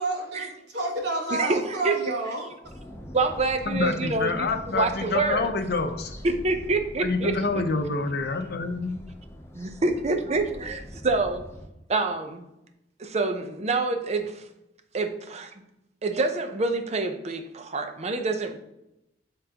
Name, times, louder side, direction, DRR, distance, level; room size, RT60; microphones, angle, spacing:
voice 1, 0.0-2.5, right 2 dB, 65° right, 1.2 m, -30 dB
voice 2, 1.3-2.0 3.1-5.5 6.2-7.6 9.5-11.5 11.9-12.4 13.0-14.5 14.9-15.5 16.0-18.6, right 3 dB, 35° right, 0.6 m, -27 dB
sound 1, 2.6-11.7, equal, 15° left, 0.6 m, -43 dB
voice 3, 3.7-6.1 7.0-9.0, left 3 dB, 60° left, 0.6 m, -27 dB
9.0 x 3.7 x 2.8 m
head